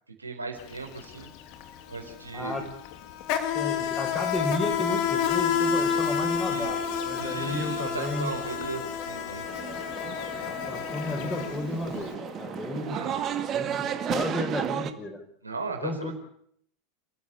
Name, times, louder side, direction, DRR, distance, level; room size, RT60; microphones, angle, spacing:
voice 1, 0.2-1.3 1.9-2.7 6.5-6.7 7.2-9.5 12.8-13.2 15.4-16.1, right 3 dB, 85° right, 3 dB, 4.5 m, -36 dB
Insect, 0.6-0.8 1.0-12.0, left 8 dB, 50° left, 3.1 m, -30 dB
voice 2, 2.3-2.6 3.5-8.3 9.6-9.8 10.4-13.1 13.5-15.2 15.8-16.1, left 2 dB, 15° left, 3 dB, 6.8 m, -33 dB
sound 1, 5.3-14.3, left 2 dB, 35° left, 5.8 m, -44 dB
sound 2, 9.5-14.9, right 10 dB, 35° right, 2.0 m, -33 dB
29.5 x 14.5 x 7.2 m, 0.66 s
figure-of-eight pair, 85°, 0 cm